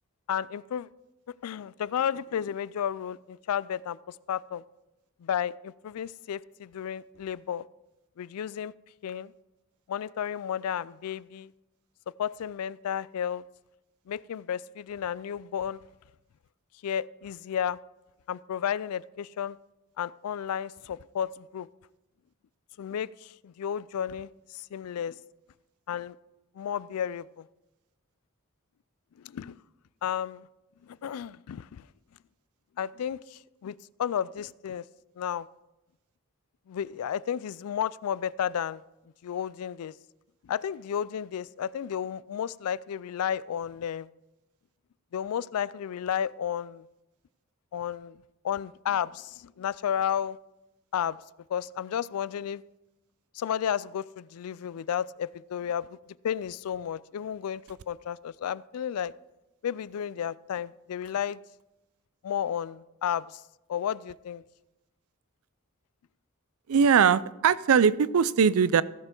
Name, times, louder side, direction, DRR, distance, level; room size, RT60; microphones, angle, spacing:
voice 1, 0.3-0.9 1.4-4.0 4.3-4.6 5.2-7.6 8.2-8.7 9.0-9.3 9.9-11.5 12.2-13.4 14.1-15.8 16.8-17.8 18.3-19.6 20.0-21.7 22.8-25.2 25.9-26.2 26.6-27.4 29.2-29.6 30.0-30.5 30.9-31.9 32.8-34.8 35.2-35.5 36.7-38.8 39.2-39.9 40.4-44.1 45.1-46.8 47.7-48.2 48.4-50.4 50.9-51.2 51.5-52.6 53.4-55.9 56.2-57.6 57.9-59.1 59.6-61.4 62.2-63.4 63.7-64.4, left 9 dB, 90° left, 20 dB, 0.3 m, -32 dB
voice 2, 66.7-68.8, right 6 dB, 75° right, 18 dB, 0.4 m, -21 dB
16.0 x 6.8 x 4.4 m, 0.99 s
head